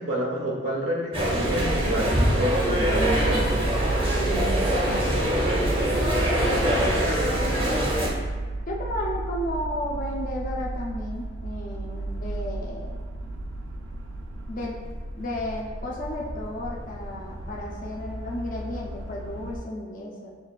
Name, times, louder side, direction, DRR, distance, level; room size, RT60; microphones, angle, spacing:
voice 1, 0.0-3.5, equal, 90° right, -3 dB, 1.1 m, -28 dB
sound 1, 1.1-8.1, right 1 dB, 30° right, 0.7 m, -24 dB
sound 2, 1.4-19.6, right 2 dB, 70° right, 0.4 m, -32 dB
voice 2, 8.7-13.0 14.5-14.8 15.2-20.3, left 1 dB, 45° left, -3 dB, 0.5 m, -33 dB
6.0 x 2.4 x 2.4 m, 1.4 s
head